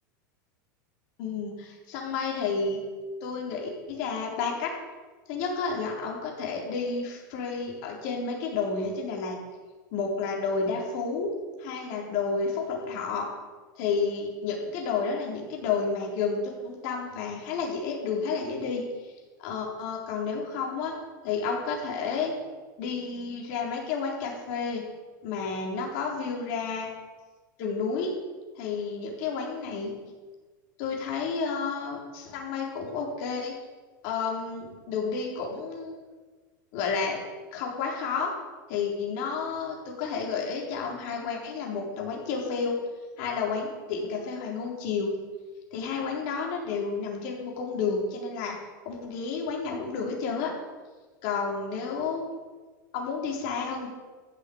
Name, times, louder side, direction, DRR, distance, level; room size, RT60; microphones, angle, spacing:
voice 1, 1.2-2.8 3.2-4.7 5.3-9.4 9.9-11.3 11.6-13.3 13.8-18.8 19.4-20.9 21.2-22.3 22.8-24.9 25.2-26.9 27.6-28.1 28.6-29.9 30.8-33.5 34.0-35.9 36.7-37.2 37.5-38.3 38.7-42.8 43.2-45.1 45.7-48.6 48.9-50.5 51.2-52.3 52.9-53.9, left 5 dB, 60° left, -1 dB, 4.0 m, -31 dB
14.0 x 6.7 x 8.7 m, 1.4 s
supercardioid pair, 120°, 11 cm